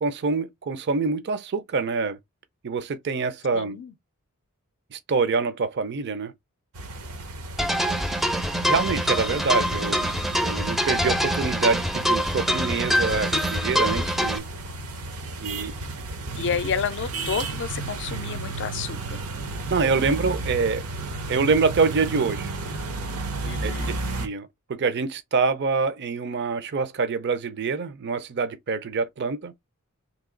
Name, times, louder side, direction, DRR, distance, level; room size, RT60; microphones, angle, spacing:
voice 1, 0.0-2.2 2.6-3.8 4.9-6.3 8.6-10.1 10.4-14.4 15.4-15.7 19.7-20.8 21.3-22.5 23.6-23.7 24.2-29.5, right 4 dB, 50° right, 0.5 m, -25 dB
voice 2, 3.5-3.9 16.4-19.2 23.4-23.9, left 6 dB, 55° left, 0.5 m, -31 dB
sound 1, 6.7-24.3, right 2 dB, 75° right, 0.8 m, -33 dB
sound 2, 7.6-14.4, equal, ahead, 0.4 m, -25 dB
3.0 x 2.8 x 3.7 m
head